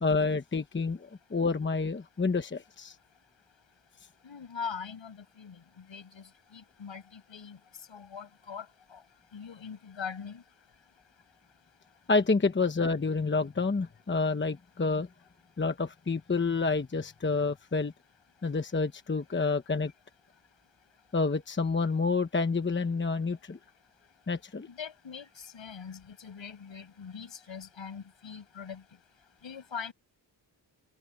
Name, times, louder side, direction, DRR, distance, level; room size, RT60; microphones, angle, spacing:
voice 1, 0.0-3.0 12.1-15.1 15.6-17.9 18.4-19.9 21.1-23.6 24.3-24.7, left 4 dB, 25° left, 1.0 m, -28 dB
voice 2, 4.2-6.2 6.5-7.6 7.9-8.7 8.9-9.0 9.3-10.4 24.7-28.8 29.4-29.9, left 6 dB, 70° left, 7.4 m, -42 dB
wide cardioid pair, 155°, 47 cm